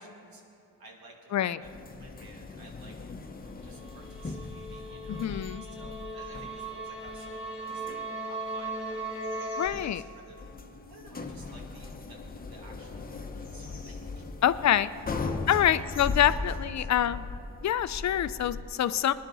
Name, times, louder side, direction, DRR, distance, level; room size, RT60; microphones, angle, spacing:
voice 1, 0.0-2.9 3.6-8.0 8.3-12.2 12.5-14.3 14.6-14.8 15.5-15.8 16.3-16.9, right 2 dB, 85° right, -1 dB, 2.4 m, -54 dB
sound 1, 1.6-18.6, left 3 dB, 25° left, 0.8 m, -39 dB
sound 2, 3.8-9.7, right 2 dB, 20° right, 2.9 m, -38 dB
voice 2, 5.2-5.6 9.6-10.0 14.4-14.9 15.5-17.2 17.6-19.1, left 11 dB, 50° left, 14 dB, 0.4 m, -26 dB
sound 3, 7.5-8.0 9.2-10.7 13.2-14.0, left 1 dB, 5° left, 3.2 m, -55 dB
20.5 x 10.5 x 4.0 m, 2.9 s
cardioid pair, 115°, 35 cm